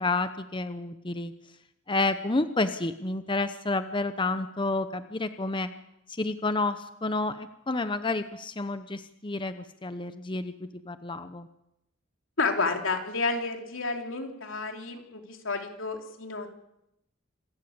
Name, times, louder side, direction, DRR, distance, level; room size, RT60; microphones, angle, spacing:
voice 1, 0.0-1.3 1.9-5.7 6.1-11.5, left 2 dB, 25° left, 10 dB, 0.8 m, -30 dB
voice 2, 12.4-16.5, left 3 dB, 85° left, 4 dB, 3.3 m, -30 dB
26.5 x 13.0 x 8.7 m, 0.83 s
head